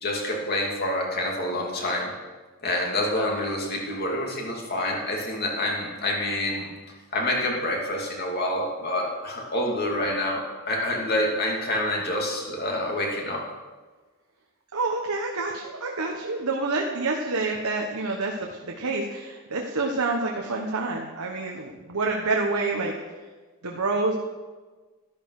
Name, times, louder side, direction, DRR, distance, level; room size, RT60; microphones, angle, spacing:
voice 1, 0.0-2.1 2.6-6.7 7.1-13.4, left 1 dB, 45° left, -1 dB, 2.6 m, -27 dB
voice 2, 14.7-22.9 23.6-24.2, right 3 dB, 80° right, 0 dB, 1.2 m, -27 dB
12.5 x 11.5 x 4.9 m, 1.3 s
head